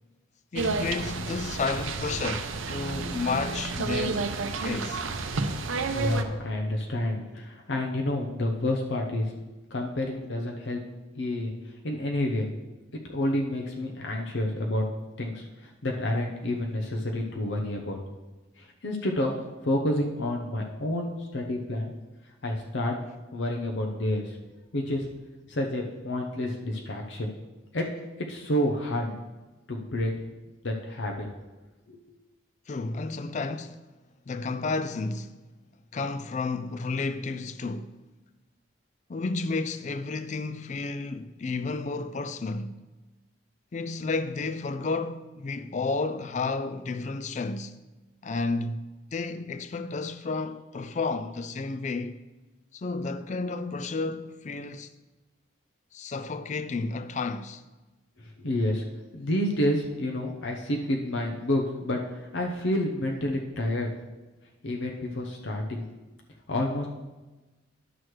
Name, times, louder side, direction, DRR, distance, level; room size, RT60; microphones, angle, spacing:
voice 1, 0.5-4.4 4.6-5.0 32.7-33.9 34.3-35.4 35.9-38.0 39.1-42.8 43.7-47.8 48.2-52.2 52.7-54.9 55.9-57.6, left 3 dB, 35° left, 0.3 m, -32 dB
sound 1, 0.6-6.2, right 4 dB, 85° right, 0.6 m, -31 dB
voice 2, 5.9-9.4 9.7-10.8 11.2-12.5 12.9-14.8 15.2-18.0 18.6-19.3 19.6-21.9 22.4-23.0 23.3-24.4 24.7-25.1 25.5-27.3 27.7-27.9 28.3-29.2 29.7-30.1 30.6-31.3 31.9-32.2 58.2-58.8 59.1-63.9 64.6-65.9 66.5-66.9, left 1 dB, 65° left, 0.7 m, -29 dB
11.0 x 6.1 x 3.2 m
head